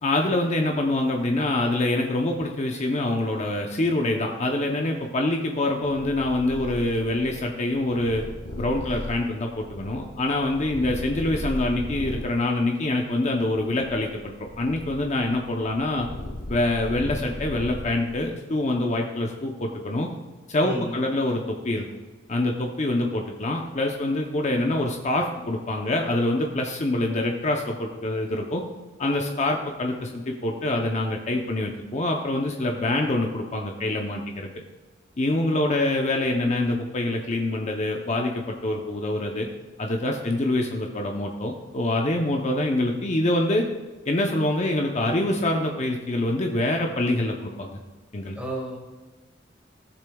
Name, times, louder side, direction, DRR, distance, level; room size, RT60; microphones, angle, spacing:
voice 1, 0.0-8.2 8.6-16.1 16.5-20.1 20.5-21.8 22.3-28.6 29.0-34.5 35.2-39.5 39.8-43.7 44.1-47.8 48.1-48.4, left 1 dB, 40° left, 2 dB, 0.7 m, -25 dB
Purr, 5.9-12.4 13.0-18.3, left 1 dB, 80° left, 1.5 m, -37 dB
voice 2, 20.6-20.9 48.4-48.8, right 1 dB, 5° right, -1 dB, 1.8 m, -31 dB
16.0 x 7.0 x 2.3 m, 1.3 s
head